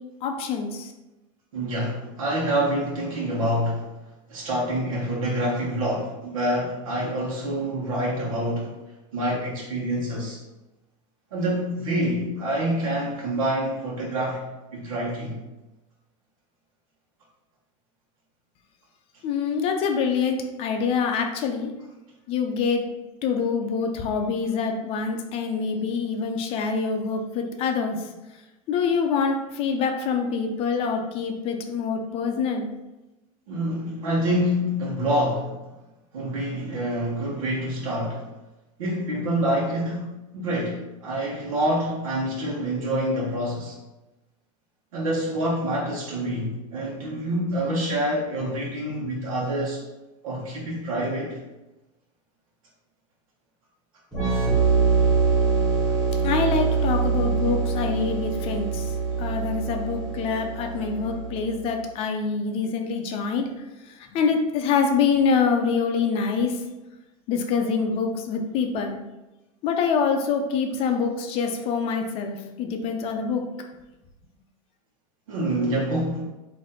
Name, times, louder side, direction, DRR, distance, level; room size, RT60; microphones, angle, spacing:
voice 1, 0.2-0.9 19.2-21.7 22.3-22.8 23.2-28.1 28.7-32.7 56.2-58.9 59.2-63.5 63.9-66.6 67.3-69.0 69.6-73.4, left 5 dB, 35° left, 4 dB, 0.5 m, -25 dB
voice 2, 1.5-3.9 4.3-8.7 9.1-10.4 11.3-14.4 14.7-15.4 33.5-35.7 36.1-38.3 38.8-43.8 44.9-49.8 50.2-51.4 75.3-76.2, right 1 dB, 90° right, -4 dB, 1.1 m, -26 dB
sound 1, 54.1-61.6, right 5 dB, 5° left, 1.4 m, -24 dB
4.2 x 2.7 x 3.8 m, 1.0 s
supercardioid pair, 150°, 17 cm